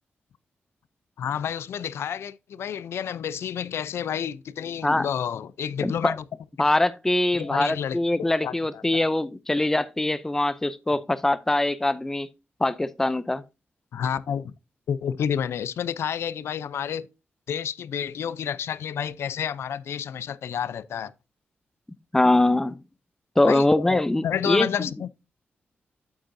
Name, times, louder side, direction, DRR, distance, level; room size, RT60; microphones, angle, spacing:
voice 1, 1.2-6.2 6.6-6.7 7.3-9.0 13.9-14.5 14.9-17.1 17.5-21.1 23.5-25.1, left 8 dB, 85° left, 0.4 m, -30 dB
voice 2, 5.8-6.1 6.6-12.3 12.6-13.4 22.1-22.8 23.4-24.9, left 2 dB, 10° left, 0.4 m, -23 dB
8.5 x 7.8 x 2.6 m
wide cardioid pair, 150°, 4 cm